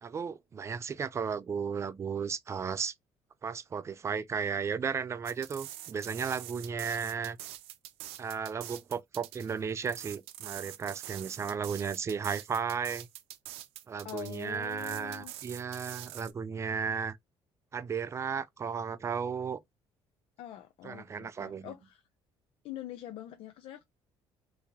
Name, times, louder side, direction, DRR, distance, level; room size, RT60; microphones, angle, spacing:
voice 1, 0.0-2.9 3.4-7.4 8.2-13.1 13.9-17.2 17.7-19.6 20.8-21.7, right 6 dB, 30° right, 0.4 m, -34 dB
sound 1, 5.3-16.3, right 14 dB, 85° right, 0.5 m, -45 dB
voice 2, 14.0-15.3 20.4-22.0 22.6-23.8, left 13 dB, 70° left, 0.5 m, -44 dB
2.9 x 2.7 x 3.7 m
cardioid pair, 120°, 10 cm